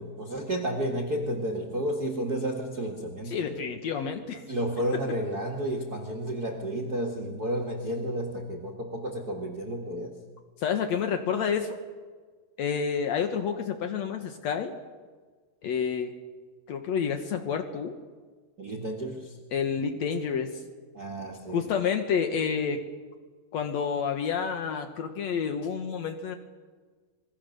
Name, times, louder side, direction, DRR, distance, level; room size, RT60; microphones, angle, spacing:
voice 1, 0.0-3.7 4.5-10.2 18.6-19.4 20.9-21.7, right 1 dB, 45° right, 3 dB, 1.2 m, -32 dB
voice 2, 3.3-4.4 10.6-11.8 12.6-14.7 15.6-16.1 16.7-18.0 19.5-20.6 21.5-22.8 23.5-26.3, left 7 dB, 85° left, 6 dB, 1.5 m, -29 dB
26.5 x 22.5 x 6.6 m, 1.5 s
omnidirectional pair, 5.0 m